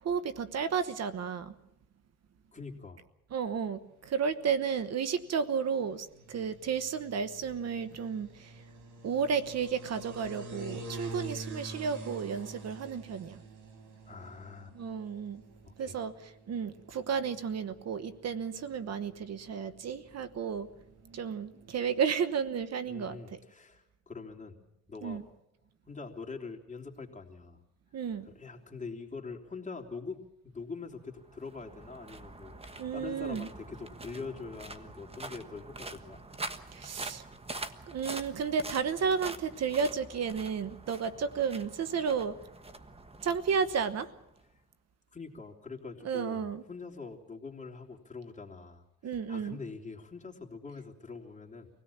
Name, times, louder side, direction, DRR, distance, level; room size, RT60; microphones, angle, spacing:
voice 1, 0.0-1.5 3.3-8.6 9.0-13.4 14.7-15.4 15.8-20.7 21.0-23.4 25.0-25.2 27.9-28.3 32.8-33.5 36.7-37.2 37.9-42.4 43.2-44.1 46.0-46.6 49.0-49.6, right 6 dB, 60° right, 12 dB, 1.1 m, -32 dB
voice 2, 2.5-3.0 14.0-14.7 15.6-16.0 22.9-24.6 24.9-25.2 25.9-27.6 28.2-36.2 45.1-51.7, left 4 dB, 25° left, 0 dB, 3.2 m, -44 dB
sound 1, 3.9-22.0, right 2 dB, 90° right, 4.0 m, -48 dB
sound 2, 31.1-44.5, right 2 dB, 20° right, 1.3 m, -45 dB
25.0 x 17.0 x 7.2 m, 0.85 s
cardioid pair, 90°, 30 cm